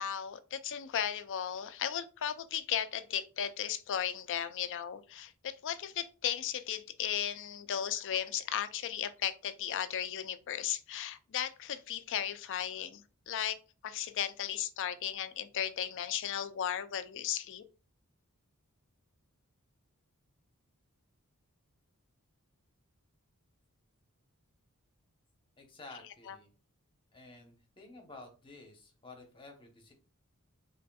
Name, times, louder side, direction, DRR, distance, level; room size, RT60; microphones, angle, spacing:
voice 1, 0.0-13.6 13.8-17.6 26.3-26.4, left 9 dB, 55° left, 0.4 m, -35 dB
voice 2, 25.6-26.5 27.1-29.9, left 2 dB, 25° left, 0.9 m, -52 dB
4.1 x 3.3 x 2.3 m
head